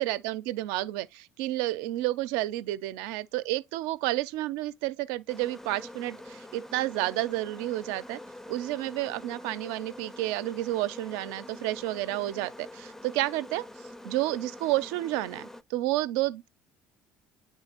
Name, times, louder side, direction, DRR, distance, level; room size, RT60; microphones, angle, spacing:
voice 1, 0.0-8.2 8.5-13.7 14.0-16.5, right 16 dB, 80° right, 0.4 m, -30 dB
sound 1, 5.3-15.6, left 1 dB, 5° left, 0.4 m, -45 dB
8.9 x 3.6 x 2.9 m
supercardioid pair, 85°, 6 cm